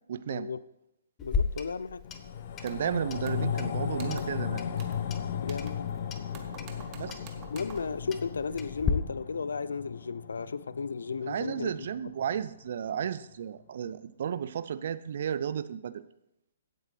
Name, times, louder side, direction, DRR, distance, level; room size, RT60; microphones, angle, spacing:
voice 1, 0.1-0.5 2.6-4.6 6.9-7.2 11.3-16.0, right 8 dB, 50° right, 15 dB, 0.6 m, -33 dB
voice 2, 1.2-2.0 5.4-5.9 7.5-11.7, left 5 dB, 65° left, 17 dB, 0.4 m, -34 dB
Clock, 1.2-8.9, left 6 dB, 20° left, 0.8 m, -37 dB
sound 1, 2.0-12.6 13.0-13.1, left 8 dB, 45° left, 0.8 m, -36 dB
sound 2, 2.6-2.9 3.2-3.7 3.9-4.4 4.8-5.1 5.4-6.0 6.3-8.0, right 6 dB, 30° right, 1.3 m, -50 dB
16.5 x 8.3 x 3.3 m, 0.82 s
figure-of-eight pair, 125°, 0 cm